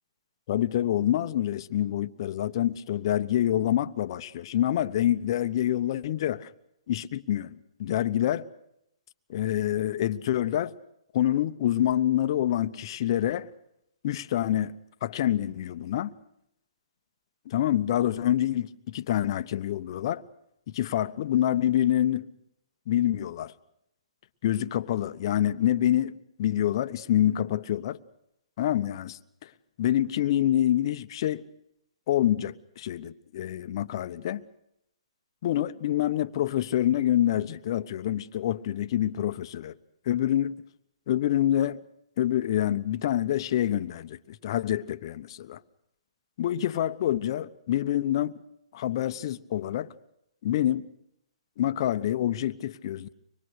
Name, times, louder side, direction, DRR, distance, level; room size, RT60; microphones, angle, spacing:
voice 1, 0.5-6.5 6.9-8.5 9.3-10.7 11.1-13.5 14.0-16.1 17.5-20.2 20.7-22.3 22.9-23.5 24.4-26.1 26.4-28.0 28.6-29.5 29.8-31.4 32.1-34.4 35.4-39.7 40.1-40.6 41.1-41.8 42.2-45.6 46.4-48.3 48.7-49.9 50.4-50.8 51.6-53.1, left 12 dB, 45° left, 1.0 m, -26 dB
25.0 x 21.5 x 6.5 m
hypercardioid pair, 145°, 3 cm